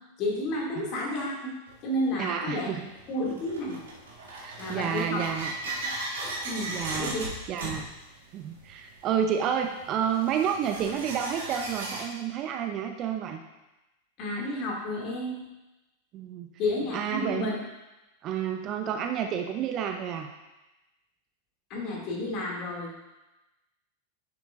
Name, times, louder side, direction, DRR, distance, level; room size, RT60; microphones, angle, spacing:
voice 1, 0.2-1.5 1.8-2.7 3.1-3.8 4.6-5.3 6.4-7.3 7.6-7.8 14.2-15.3 16.6-17.6 21.7-22.9, left 1 dB, 40° left, -2 dB, 2.4 m, -31 dB
sound 1, 1.7-1.8 2.6-12.0, right 2 dB, 65° right, 1.6 m, -37 dB
voice 2, 2.2-2.9 4.4-5.5 6.7-7.2 7.5-7.9 8.3-13.4 16.1-16.5 16.9-17.5 18.2-20.3, right 8 dB, 35° right, 5 dB, 0.6 m, -30 dB
9.8 x 7.0 x 2.5 m, 1.0 s
figure-of-eight pair, 90°, 0 cm